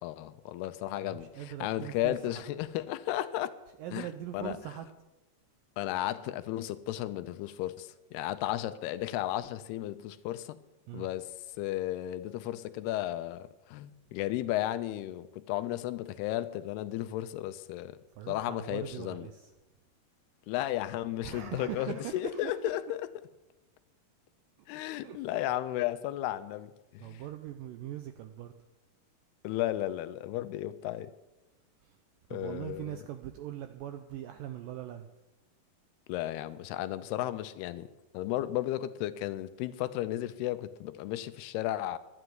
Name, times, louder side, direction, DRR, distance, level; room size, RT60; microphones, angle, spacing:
voice 1, 0.0-3.5 3.9-4.1 4.3-4.5 5.8-10.6 10.9-11.3 11.6-18.0 18.3-19.3 20.5-23.0 24.7-27.2 29.4-31.1 32.3-33.0 36.1-37.9 38.1-42.0, left 14 dB, 80° left, 2.6 m, -34 dB
voice 2, 0.9-2.4 3.8-4.9 10.9-11.1 18.2-19.5 21.2-22.8 25.0-25.3 27.0-28.5 31.8-32.0 32.3-35.1, right 11 dB, 80° right, 2.0 m, -41 dB
12.0 x 9.9 x 9.4 m
omnidirectional pair, 4.7 m